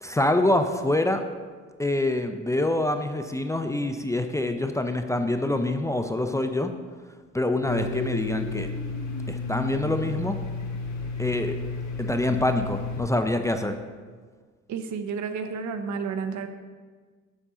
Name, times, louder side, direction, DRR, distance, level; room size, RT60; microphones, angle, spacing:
voice 1, 0.0-1.2 1.8-6.7 7.3-8.7 9.3-10.4 11.2-11.6 12.0-13.8, left 1 dB, 10° left, 6 dB, 0.4 m, -25 dB
Domestic sounds home sounds, 7.7-13.0, left 3 dB, 65° left, 1.4 m, -32 dB
voice 2, 14.7-16.5, right 5 dB, 70° right, 8 dB, 0.8 m, -31 dB
7.3 x 6.8 x 3.7 m, 1.5 s
cardioid pair, 90°, 30 cm